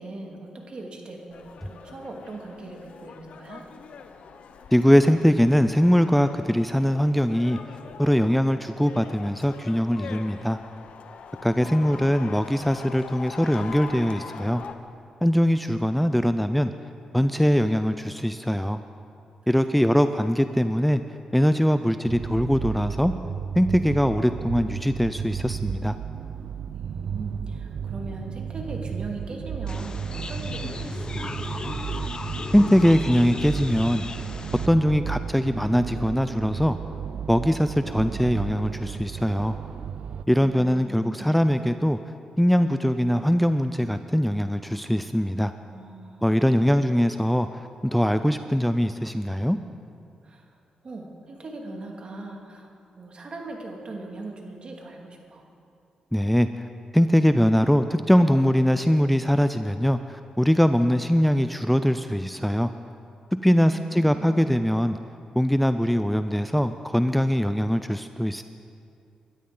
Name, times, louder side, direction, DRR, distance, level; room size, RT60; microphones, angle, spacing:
voice 1, 0.0-3.7 19.4-19.9 26.7-31.8 38.1-38.2 40.4-41.4 44.7-44.8 45.7-46.9 50.2-50.5 50.8-55.4, right 2 dB, 50° right, 1 dB, 2.4 m, -40 dB
sound 1, 1.3-14.7, left 5 dB, 70° left, 0.8 m, -43 dB
voice 2, 4.7-7.6 8.0-10.6 11.4-14.6 15.2-16.7 17.1-18.8 19.5-21.0 21.3-23.1 23.5-26.0 32.5-34.3 34.7-36.8 37.3-39.6 40.3-42.0 42.4-45.5 46.2-49.6 56.1-56.6 56.9-62.7 63.4-65.0 65.4-68.4, equal, 5° left, 10 dB, 0.5 m, -22 dB
sound 2, 22.0-40.2, right 7 dB, 70° right, 0.4 m, -34 dB
sound 3, 29.7-34.7, left 3 dB, 40° left, 0.9 m, -35 dB
22.0 x 12.5 x 3.9 m, 2.4 s
cardioid pair, 65°, 2 cm